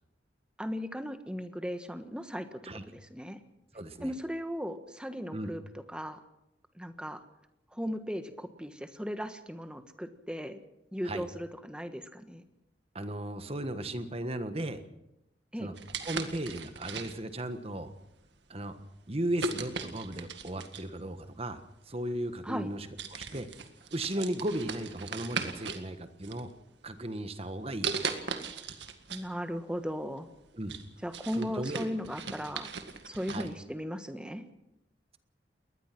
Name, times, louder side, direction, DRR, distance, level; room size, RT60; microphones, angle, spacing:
voice 1, 0.6-3.4 4.0-5.6 5.9-6.2 6.7-7.2 7.7-10.6 10.9-12.4 15.5-15.7 22.4-22.7 29.1-30.3 31.0-32.7 33.0-34.4, equal, 5° right, 9 dB, 1.4 m, -37 dB
voice 2, 3.7-4.1 5.3-5.5 11.0-11.2 12.9-14.8 15.6-15.7 16.0-17.9 18.5-18.8 19.1-23.5 23.9-26.5 26.8-28.1 30.5-30.8 31.3-31.9 33.3-33.5, right 1 dB, 35° right, 10 dB, 1.4 m, -36 dB
sound 1, 15.8-17.4 18.1-18.4 19.4-21.0 22.0-22.1 22.6-22.7 23.0-25.9 26.2-26.9 27.8-29.3 29.6-29.7 30.2-33.5, right 5 dB, 75° right, 1.9 m, -38 dB
22.0 x 19.5 x 6.0 m, 0.90 s
head